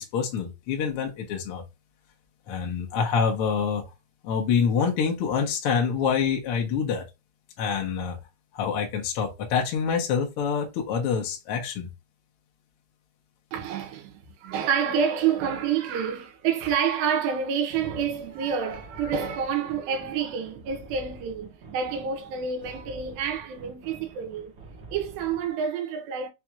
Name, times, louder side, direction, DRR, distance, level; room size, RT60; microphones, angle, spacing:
voice 1, 0.0-1.6 2.5-3.8 4.2-7.1 7.6-8.2 8.5-11.9, left 6 dB, 80° left, 1.2 m, -26 dB
voice 2, 13.5-24.5 24.9-26.3, right 7 dB, 90° right, 2.6 m, -28 dB
sound 1, 17.7-25.5, right 3 dB, 65° right, 1.2 m, -47 dB
5.8 x 2.4 x 2.9 m
omnidirectional pair, 4.1 m